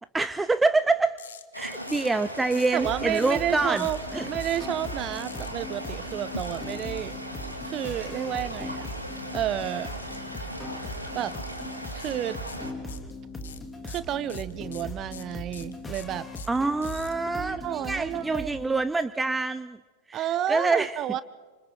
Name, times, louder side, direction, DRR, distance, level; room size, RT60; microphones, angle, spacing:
voice 1, 0.1-1.2 1.5-3.8 4.1-4.3 16.5-19.8 20.1-20.9, right 3 dB, 10° right, 14 dB, 0.6 m, -26 dB
sound 1, 1.2-1.4 1.9-2.2 2.5-2.8 3.1-3.4 3.8-4.0 4.4-4.7 5.2-5.5 6.4-7.0 10.1-10.4 10.7-10.8 11.3-11.6 12.0-12.2 12.5-13.1 13.4-17.1, left 8 dB, 65° left, 1.2 m, -46 dB
sound 2, 1.5-12.7, equal, 90° left, 2.5 m, -38 dB
voice 2, 2.7-4.0 4.3-7.1 7.6-8.9 9.3-9.9 11.1-11.3 11.9-12.4 13.8-16.2 17.3-18.8 20.1-21.2, right 11 dB, 35° right, 16 dB, 1.0 m, -31 dB
sound 3, 2.8-18.5, left 1 dB, 15° left, 2.8 m, -39 dB
29.5 x 26.5 x 3.8 m, 1.4 s
figure-of-eight pair, 90°, 0 cm